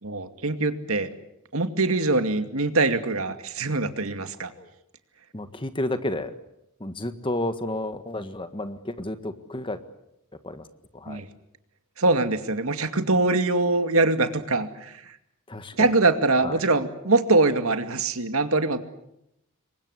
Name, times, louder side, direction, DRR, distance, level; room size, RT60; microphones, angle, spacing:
voice 1, 0.0-1.1 1.5-4.5 11.1-11.3 12.0-15.2 15.8-18.8, right 3 dB, 75° right, 8 dB, 2.3 m, -23 dB
voice 2, 5.3-6.3 6.8-9.8 10.4-10.7 10.9-11.2 15.5-16.0 16.4-16.6, left 1 dB, 25° left, 10 dB, 1.6 m, -31 dB
28.0 x 23.5 x 8.3 m, 0.81 s
head